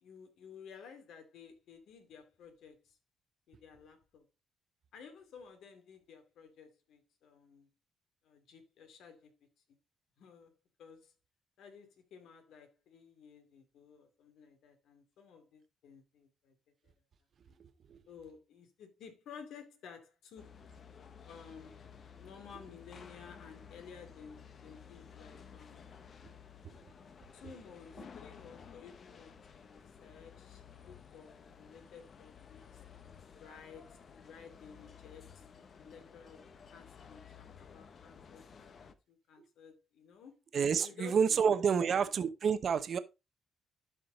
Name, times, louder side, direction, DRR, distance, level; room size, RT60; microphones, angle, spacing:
voice 1, 0.0-3.0 3.5-4.3 4.9-7.7 8.2-9.3 10.2-11.1 11.6-16.6 16.8-16.9 17.5-17.6 18.1-20.6 21.2-21.8 22.2-25.9 27.3-32.8 33.4-35.4 35.8-40.4 40.8-42.1, left 6 dB, 75° left, 2.5 m, -54 dB
sound 1, 20.4-38.9, left 7 dB, 50° left, 1.1 m, -54 dB
voice 2, 40.5-43.0, right 6 dB, 55° right, 0.9 m, -29 dB
12.0 x 4.9 x 3.9 m
cardioid pair, 90°, 0 cm